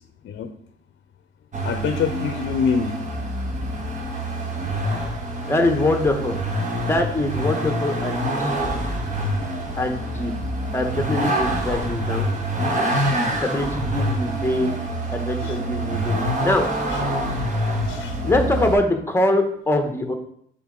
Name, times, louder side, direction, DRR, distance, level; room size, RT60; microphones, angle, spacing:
Vehicle, 1.5-18.8, right 1 dB, 35° right, 1.3 m, -26 dB
voice 1, 1.6-2.9 15.4-15.6 16.9-17.0 17.9-18.2, left 6 dB, 65° left, 7 dB, 0.6 m, -25 dB
voice 2, 5.5-6.3 6.9-8.5 9.8-10.3 10.7-12.3 13.4-14.7 15.1-16.6 18.2-20.1, left 1 dB, 10° left, 4 dB, 1.0 m, -23 dB
7.2 x 3.9 x 3.8 m, 0.66 s
cardioid pair, 100°, 20 cm